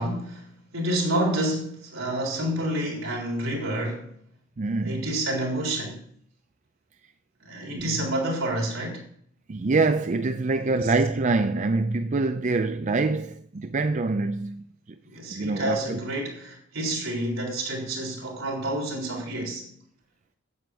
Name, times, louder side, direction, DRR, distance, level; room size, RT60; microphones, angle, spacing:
voice 1, 0.0-4.1 4.8-6.0 7.4-9.0 10.7-10.9 15.0-19.7, right 1 dB, 80° right, 4.1 m, -29 dB
voice 2, 4.6-5.0 7.7-7.9 9.5-14.6 15.3-16.0, right 3 dB, 40° right, 0.5 m, -25 dB
9.7 x 8.2 x 7.8 m
head